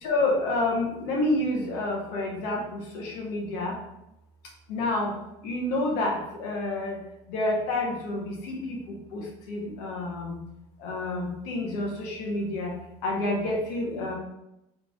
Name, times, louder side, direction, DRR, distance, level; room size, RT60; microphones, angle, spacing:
voice 1, 0.0-3.7 4.7-5.1 5.4-7.0 7.3-10.4 10.8-12.7 13.0-14.1, left 2 dB, 80° left, 0 dB, 1.3 m, -29 dB
3.7 x 3.4 x 3.6 m, 0.88 s
supercardioid pair, 115°, 16 cm